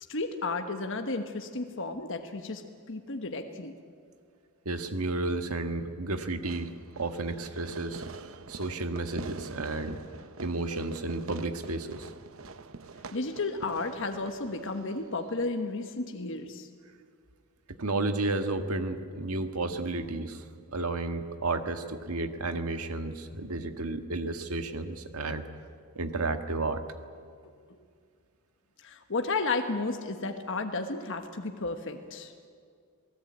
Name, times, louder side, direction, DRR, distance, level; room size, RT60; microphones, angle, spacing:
voice 1, 0.1-3.7 13.1-16.7 27.4-27.5 28.8-32.3, left 3 dB, 60° left, 5 dB, 1.3 m, -33 dB
voice 2, 4.6-8.1 8.5-10.0 10.4-12.1 17.8-25.5 25.9-26.8, right 2 dB, 85° right, 7 dB, 1.6 m, -32 dB
Fireworks, 6.4-15.5, right 3 dB, 65° right, 0.9 m, -45 dB
27.5 x 18.5 x 8.7 m, 2.2 s
head